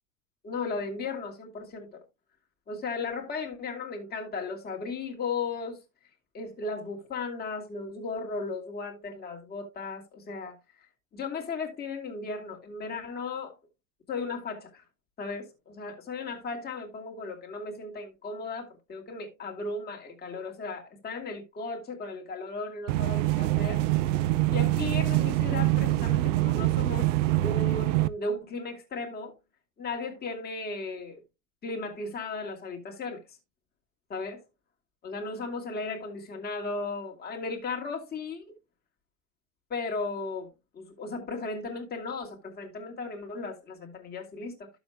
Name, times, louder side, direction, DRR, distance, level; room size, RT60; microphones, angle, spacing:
voice 1, 0.4-2.0 2.7-5.8 6.3-10.6 11.1-13.5 14.1-14.8 15.2-23.8 24.1-27.1 27.4-29.3 29.8-31.2 31.6-33.2 34.1-34.4 35.0-38.5 39.7-40.5 40.7-44.7, left 3 dB, 25° left, 2.6 m, -36 dB
sound 1, 22.9-28.1, right 17 dB, 65° right, 0.7 m, -25 dB
12.5 x 7.1 x 2.2 m
supercardioid pair, 125°, 41 cm